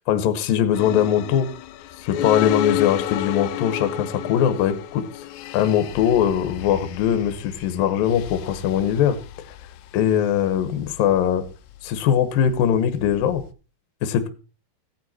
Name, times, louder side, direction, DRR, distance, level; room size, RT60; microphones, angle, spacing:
voice 1, 0.1-1.5 2.0-5.0 5.5-9.2 9.9-11.4 11.8-13.4 14.0-14.3, left 9 dB, 70° left, 9 dB, 2.7 m, -21 dB
sound 1, 0.8-13.5, left 11 dB, 90° left, 3.0 m, -32 dB
16.0 x 9.5 x 4.3 m, 0.34 s
omnidirectional pair, 4.7 m